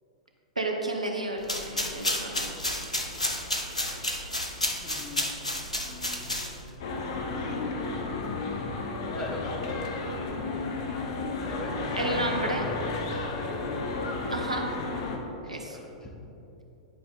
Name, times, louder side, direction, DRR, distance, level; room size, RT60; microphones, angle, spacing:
voice 1, 0.6-2.5 11.9-12.7 14.2-14.7 15.4-15.8, right 2 dB, 85° right, 2 dB, 0.9 m, -31 dB
sound 1, 1.4-6.8, left 1 dB, 85° left, 0.8 m, -31 dB
voice 2, 4.8-6.3 9.1-9.5 11.4-12.8 13.2-13.6 15.4-16.1, left 2 dB, 15° left, 0 dB, 1.2 m, -41 dB
sound 2, 6.8-15.2, left 3 dB, 50° left, 0.9 m, -32 dB
10.0 x 5.1 x 3.9 m, 2.9 s
figure-of-eight pair, 100°, 3 cm